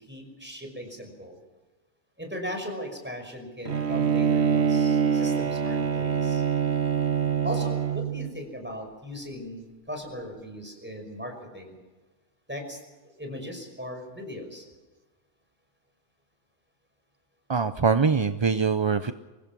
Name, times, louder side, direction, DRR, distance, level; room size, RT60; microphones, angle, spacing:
voice 1, 0.0-1.4 2.2-6.4 7.4-11.8 12.5-12.8 13.2-14.6, equal, 10° right, 4 dB, 5.6 m, -38 dB
Bowed string instrument, 3.7-8.3, right 7 dB, 55° right, 1.4 m, -25 dB
voice 2, 17.5-19.1, right 5 dB, 30° right, 10 dB, 0.5 m, -23 dB
24.5 x 20.5 x 6.2 m, 1.2 s
omnidirectional pair, 1.3 m